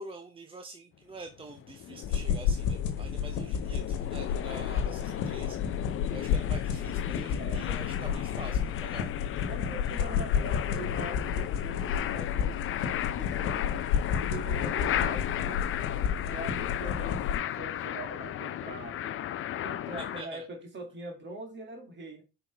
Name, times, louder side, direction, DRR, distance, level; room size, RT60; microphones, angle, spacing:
voice 1, 0.0-5.6 6.1-9.1 9.9-10.1 20.0-20.4, right 3 dB, 20° right, 0.7 m, -46 dB
sound 1, 1.3-20.2, left 11 dB, 45° left, 0.5 m, -35 dB
sound 2, 2.0-17.4, left 7 dB, 80° left, 1.4 m, -31 dB
voice 2, 7.4-7.7 9.5-15.7 16.2-19.2 19.6-22.2, right 2 dB, 40° right, 2.4 m, -43 dB
5.9 x 4.8 x 3.4 m
cardioid pair, 105°, 30 cm